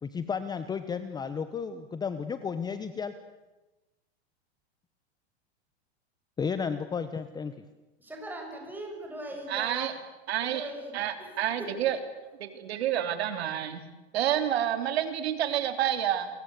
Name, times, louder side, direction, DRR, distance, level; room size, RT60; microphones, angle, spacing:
voice 1, 0.0-3.1 6.4-7.5, left 6 dB, 10° left, 11 dB, 1.0 m, -33 dB
voice 2, 8.0-9.9 10.4-10.9 11.2-11.3 11.6-11.9, right 1 dB, 5° right, 2 dB, 6.6 m, -40 dB
voice 3, 9.5-9.9 10.3-12.0 12.4-13.8 14.1-16.3, right 11 dB, 75° right, 9 dB, 3.5 m, -29 dB
29.5 x 23.0 x 8.4 m, 1.1 s
supercardioid pair, 150°, 32 cm